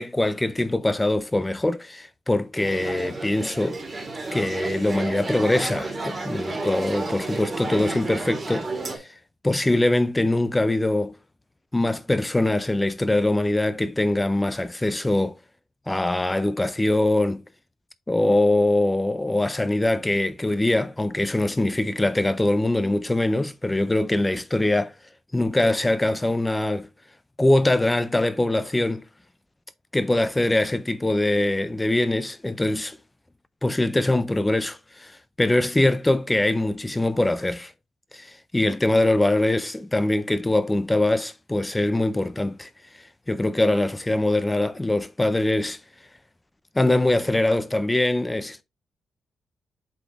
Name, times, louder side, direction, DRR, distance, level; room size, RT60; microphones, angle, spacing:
voice 1, 0.0-3.8 4.3-9.1 9.4-11.2 11.7-15.4 15.9-17.4 18.1-24.9 25.3-26.9 27.4-29.1 29.9-33.0 33.6-37.7 38.1-42.7 43.3-45.8 46.8-48.6, left 1 dB, 10° left, 0.3 m, -23 dB
sound 1, 2.6-9.0, right 2 dB, 25° right, 2.0 m, -31 dB
8.0 x 4.1 x 2.9 m
wide cardioid pair, 160°, 0 cm